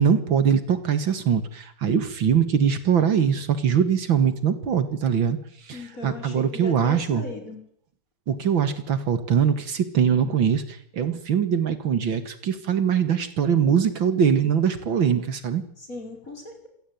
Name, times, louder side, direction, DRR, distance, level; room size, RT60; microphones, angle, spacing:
voice 1, 0.0-5.4 5.6-7.3 8.3-15.6, right 7 dB, 70° right, 11 dB, 2.6 m, -22 dB
voice 2, 5.7-7.6 15.8-16.7, left 2 dB, 40° left, 4 dB, 5.7 m, -38 dB
26.5 x 17.5 x 9.4 m, 0.71 s
omnidirectional pair, 2.2 m